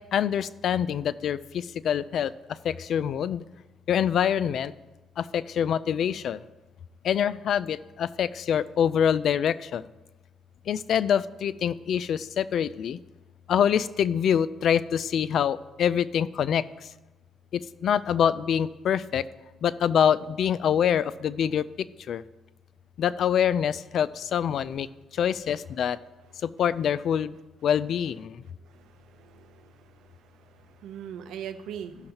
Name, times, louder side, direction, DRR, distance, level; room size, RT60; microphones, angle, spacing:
voice 1, 0.1-2.3 2.6-3.4 3.9-4.7 5.2-6.4 7.0-9.8 10.7-13.0 13.5-16.6 17.5-19.2 19.6-21.6 22.1-22.2 23.0-24.9 25.2-26.0 26.4-27.3 27.6-28.3, left 8 dB, 65° left, 16 dB, 0.4 m, -25 dB
voice 2, 28.6-32.0, right 9 dB, 85° right, 10 dB, 0.6 m, -42 dB
16.5 x 6.4 x 2.9 m, 1.1 s
cardioid pair, 90°, 0 cm